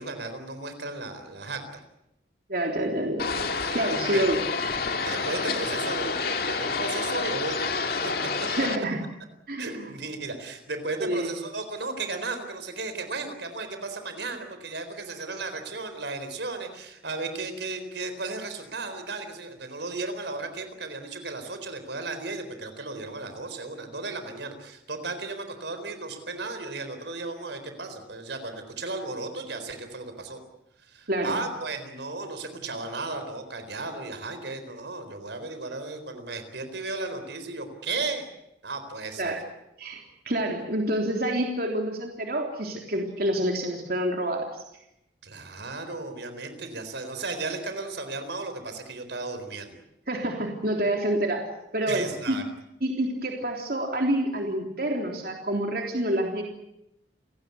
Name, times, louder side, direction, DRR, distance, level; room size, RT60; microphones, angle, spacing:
voice 1, 0.0-1.8 4.1-4.3 5.0-8.1 9.6-30.4 30.8-38.2 38.6-39.4 45.2-49.8 51.9-52.4, right 3 dB, 70° right, 8 dB, 4.0 m, -35 dB
voice 2, 2.5-4.4 8.5-9.0 9.5-9.9 11.0-11.4 31.1-31.4 39.2-39.4 39.8-44.5 50.1-51.5 51.7-52.4 52.8-56.4, right 1 dB, 55° right, 1 dB, 3.5 m, -28 dB
sound 1, 3.2-8.8, left 4 dB, 55° left, 2.4 m, -29 dB
29.5 x 17.5 x 8.4 m, 0.84 s
head